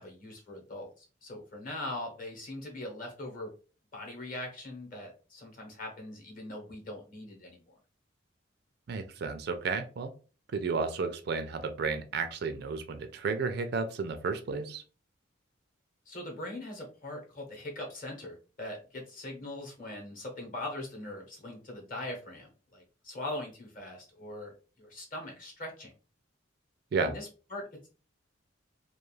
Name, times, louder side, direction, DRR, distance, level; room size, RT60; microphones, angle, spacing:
voice 1, 0.0-3.5 3.9-7.7 16.1-25.9 27.0-27.9, left 1 dB, 45° left, 1 dB, 0.9 m, -41 dB
voice 2, 8.9-10.1 10.5-14.8 26.9-27.1, right 4 dB, 50° right, 8 dB, 0.3 m, -32 dB
2.3 x 2.3 x 3.1 m, 0.36 s
head